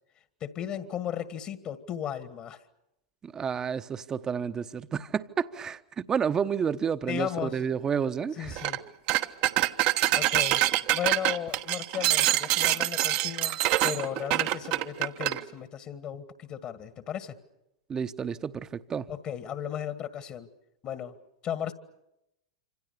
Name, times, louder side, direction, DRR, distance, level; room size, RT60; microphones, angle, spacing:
voice 1, 0.4-2.6 7.1-7.6 8.4-8.8 10.1-10.6 10.9-17.4 19.1-20.5 20.8-21.2 21.4-21.7, left 9 dB, 40° left, 1.9 m, -35 dB
voice 2, 3.2-8.6 17.9-19.1, right 7 dB, 25° right, 1.1 m, -30 dB
sound 1, 8.6-8.8 9.1-15.4, right 15 dB, 50° right, 1.2 m, -25 dB
27.0 x 26.5 x 6.9 m
hypercardioid pair, 95°, 3 cm